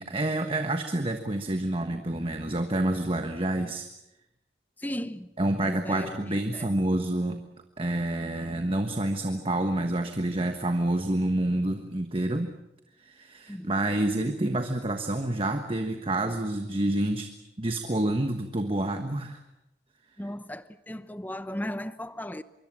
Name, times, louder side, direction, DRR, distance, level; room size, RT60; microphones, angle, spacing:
voice 1, 0.0-3.9 5.4-7.4 7.8-12.5 13.0-17.3 17.6-19.4, right 1 dB, 30° right, 1.3 m, -28 dB
voice 2, 4.8-5.3 5.6-6.7 13.5-13.7 20.2-22.4, left 1 dB, 10° left, 0.9 m, -36 dB
25.0 x 24.0 x 7.5 m
head